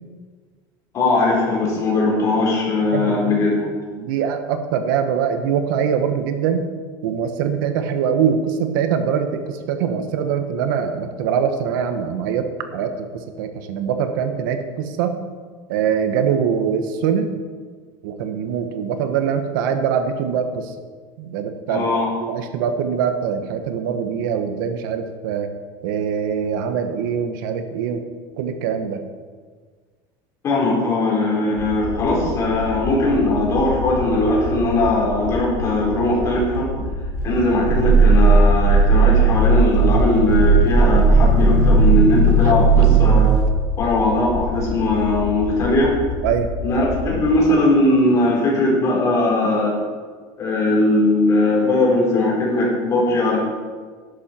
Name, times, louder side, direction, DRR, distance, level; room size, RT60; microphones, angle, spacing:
voice 1, 0.9-3.7 21.7-22.1 30.4-36.7 37.2-43.3 43.8-46.0 46.6-49.7 50.4-53.4, left 2 dB, 30° left, -4 dB, 4.1 m, -19 dB
voice 2, 2.9-3.6 3.9-6.7 7.0-15.2 15.7-17.3 18.0-20.7 21.2-21.9 22.2-25.5 25.8-28.0 28.4-29.0 46.2-46.5, right 7 dB, 90° right, 7 dB, 1.3 m, -23 dB
sound 1, 31.6-47.3, left 3 dB, 85° left, 1.9 m, -29 dB
Growling, 37.1-43.5, right 4 dB, 55° right, 0.9 m, -15 dB
12.0 x 11.5 x 4.5 m, 1.5 s
cardioid pair, 170°, 11 cm